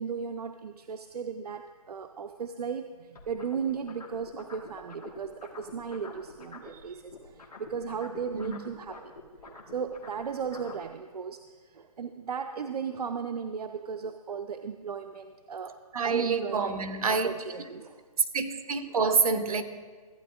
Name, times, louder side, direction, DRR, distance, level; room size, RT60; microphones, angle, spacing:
voice 1, 0.0-9.1 9.5-11.4 11.7-15.7 16.0-18.0, right 6 dB, 85° right, 7 dB, 0.5 m, -36 dB
sound 1, 3.2-6.8 7.1-10.9, left 4 dB, 80° left, 1.5 m, -47 dB
voice 2, 15.9-17.7 18.3-19.6, right 5 dB, 70° right, 8 dB, 1.0 m, -28 dB
14.5 x 8.8 x 2.4 m, 1.5 s
hypercardioid pair, 150°, 19 cm